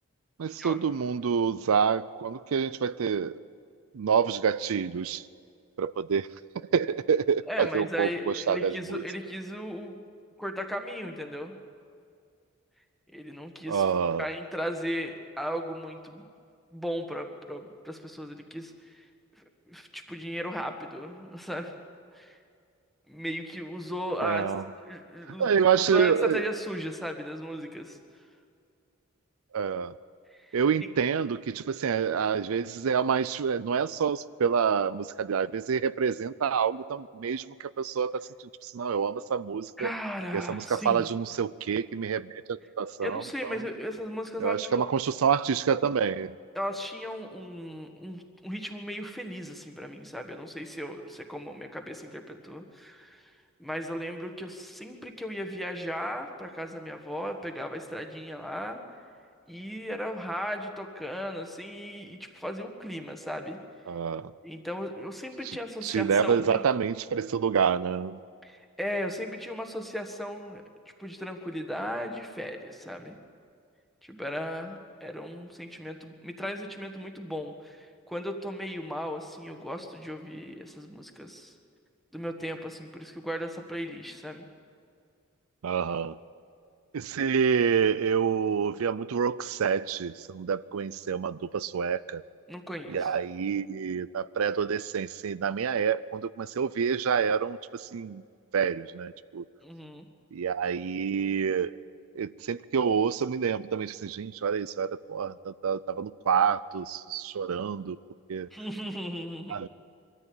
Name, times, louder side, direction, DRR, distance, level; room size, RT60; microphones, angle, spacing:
voice 1, 0.4-3.4 3.9-5.2 5.8-6.3 6.7-9.0 13.7-14.3 24.2-24.6 25.4-26.5 29.5-29.9 30.5-38.3 38.6-39.9 40.3-43.6 44.4-46.4 63.9-64.3 65.4-65.6 65.8-68.2 85.6-86.2 86.9-92.2 92.9-98.2 98.5-99.4 100.3-101.7 102.2-108.0 108.3-108.5 109.5-109.7, right 6 dB, 75° right, 16 dB, 0.4 m, -27 dB
voice 2, 7.5-10.0 10.4-11.6 13.1-13.8 14.2-16.3 16.7-19.0 19.4-21.7 22.1-22.4 23.1-24.5 24.9-25.5 25.9-28.0 30.3-30.6 39.8-41.1 43.0-44.8 46.5-53.2 53.6-58.8 59.5-63.6 64.4-66.6 68.4-70.6 71.0-73.2 74.0-81.5 82.1-84.4 92.5-93.1 99.6-100.0 108.5-109.6, equal, ahead, 4 dB, 1.5 m, -36 dB
23.0 x 14.0 x 8.9 m, 2.3 s
head